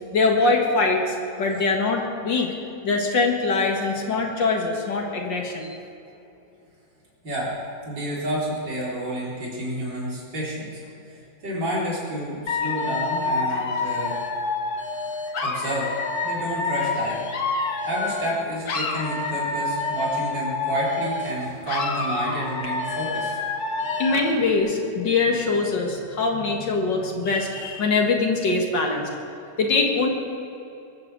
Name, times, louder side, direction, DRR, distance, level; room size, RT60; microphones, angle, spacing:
voice 1, 0.1-2.5 2.8-5.7 24.0-29.1 29.6-30.1, left 3 dB, 75° left, 1 dB, 2.3 m, -23 dB
voice 2, 7.2-7.5 7.8-10.8 11.1-14.2 15.4-15.9 16.2-17.2 17.9-23.4, right 1 dB, 70° right, -6 dB, 4.5 m, -29 dB
Dog / Alarm, 12.5-18.4 18.6-21.4 21.7-24.4, left 3 dB, 55° left, 1.7 m, -27 dB
21.5 x 7.9 x 7.4 m, 2.8 s
omnidirectional pair, 2.0 m